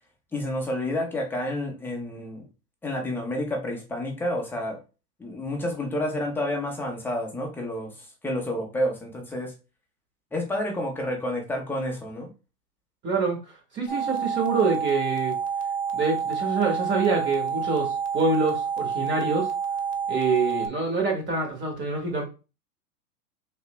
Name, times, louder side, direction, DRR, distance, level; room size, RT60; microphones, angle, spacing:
voice 1, 0.3-2.4 2.8-4.8 5.2-7.9 8.2-9.5 10.3-12.3, left 1 dB, 5° left, 0.4 m, -29 dB
voice 2, 13.0-13.4 13.7-15.4 15.9-19.5 20.1-22.2, right 4 dB, 25° right, 1.0 m, -26 dB
sound 1, 13.9-20.7, right 7 dB, 45° left, 0.8 m, -28 dB
3.3 x 2.7 x 3.0 m
hypercardioid pair, 115°, 48 cm